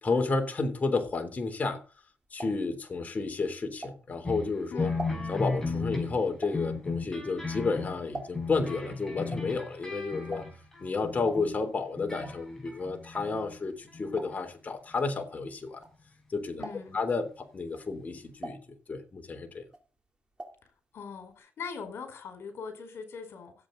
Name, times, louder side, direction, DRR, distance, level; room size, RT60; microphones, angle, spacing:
voice 1, 0.0-1.8 2.3-4.9 5.3-10.4 10.8-15.8 16.3-16.6 16.9-18.6 18.9-19.6, left 4 dB, 35° left, 3.3 m, -31 dB
sound 1, 1.8-4.4 4.7-8.7 8.9-16.2 16.5-17.1 17.6-19.3 19.6-20.7 21.0-21.1 21.3-21.4, right 1 dB, 20° right, 3.3 m, -45 dB
sound 2, 4.2-11.6 12.0-13.6 13.9-14.4 15.2-15.3, left 3 dB, 10° left, 5.8 m, -35 dB
voice 2, 4.7-5.1 16.6-17.0 20.6-23.5, left 5 dB, 60° left, 4.6 m, -41 dB
16.0 x 8.5 x 4.0 m
cardioid pair, 85°, 5 cm